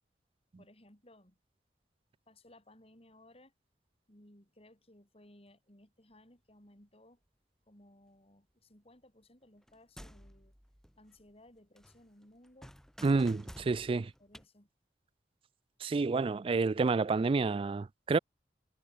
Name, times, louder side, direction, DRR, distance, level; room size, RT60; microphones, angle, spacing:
voice 1, 0.6-1.4 2.3-3.5 4.1-7.2 7.7-10.5 11.0-12.8 13.6-14.7, left 1 dB, 35° left, 7.5 m, -60 dB
sound 1, 9.6-11.5 11.8-14.5, equal, 5° left, 4.1 m, -53 dB
voice 2, 13.0-14.1 15.8-18.2, right 4 dB, 30° right, 0.3 m, -29 dB
head